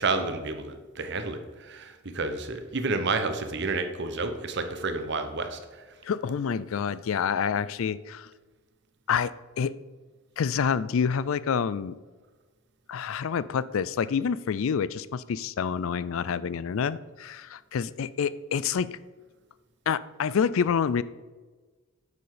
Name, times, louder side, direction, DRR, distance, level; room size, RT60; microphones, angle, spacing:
voice 1, 0.0-5.9, right 3 dB, 50° right, 8 dB, 1.0 m, -30 dB
voice 2, 6.0-8.3 9.1-9.8 10.4-12.0 12.9-19.0 19.9-21.0, left 6 dB, 65° left, 18 dB, 0.4 m, -28 dB
9.5 x 7.0 x 5.0 m, 1.3 s
head